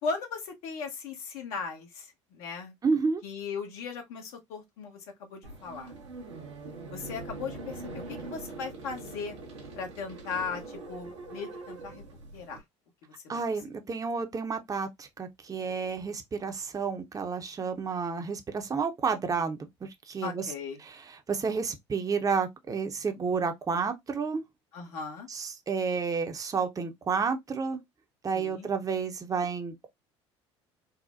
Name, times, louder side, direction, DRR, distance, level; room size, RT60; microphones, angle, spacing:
voice 1, 0.0-2.7 3.2-5.9 6.9-9.4 9.8-12.0 12.3-12.6 13.2-13.4 20.2-20.8 24.7-25.3 28.3-28.7, left 5 dB, 70° left, 1.2 m, -37 dB
voice 2, 2.8-3.2 13.3-20.5 20.8-24.4 25.3-27.8 28.2-29.9, right 5 dB, 25° right, 0.7 m, -31 dB
sound 1, 5.4-12.6, right 3 dB, 85° right, 1.0 m, -43 dB
4.1 x 2.1 x 2.4 m
hypercardioid pair, 70°, 15 cm